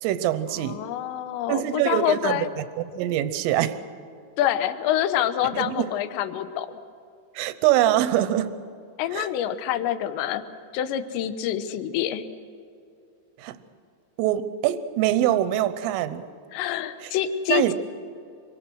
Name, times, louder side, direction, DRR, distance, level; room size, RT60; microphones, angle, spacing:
voice 1, 0.0-0.8 1.5-3.8 5.5-5.9 7.4-8.6 9.1-9.3 13.4-13.6 14.2-16.3 17.0-17.1 17.5-17.7, right 12 dB, 85° right, 12 dB, 3.4 m, -24 dB
voice 2, 0.5-2.5 4.4-6.7 9.0-10.4 10.7-12.3 16.5-17.7, left 11 dB, 75° left, 10 dB, 3.0 m, -26 dB
26.5 x 23.5 x 6.3 m, 2.5 s
omnidirectional pair, 5.6 m